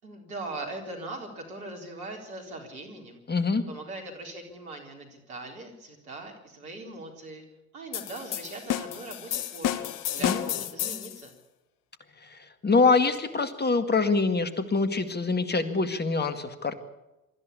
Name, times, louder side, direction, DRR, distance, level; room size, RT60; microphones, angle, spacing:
voice 1, 0.0-3.2 3.7-7.4 7.7-11.3, right 2 dB, 80° right, 2 dB, 4.3 m, -40 dB
voice 2, 3.3-3.6 10.2-10.4 12.2-16.7, left 4 dB, 25° left, 10 dB, 2.1 m, -25 dB
sound 1, 7.9-11.2, left 11 dB, 45° left, 1.1 m, -31 dB
23.5 x 14.0 x 8.5 m, 0.99 s
figure-of-eight pair, 65°, 42 cm